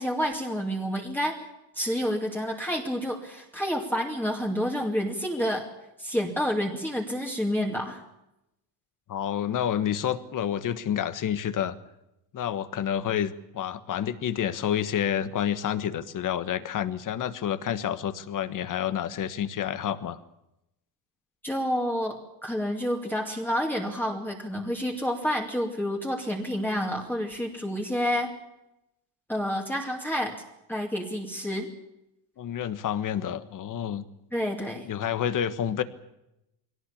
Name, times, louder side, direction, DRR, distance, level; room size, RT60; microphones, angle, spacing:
voice 1, 0.0-1.4 1.8-5.7 6.0-8.0 21.4-28.3 29.3-30.4 30.7-31.7 34.3-34.9, equal, 5° left, 0 dB, 2.4 m, -29 dB
voice 2, 9.1-11.8 12.3-20.2 32.4-34.0 34.7-35.8, left 9 dB, 40° left, 13 dB, 1.4 m, -29 dB
22.0 x 17.5 x 8.6 m, 0.88 s
cardioid pair, 130°, 48 cm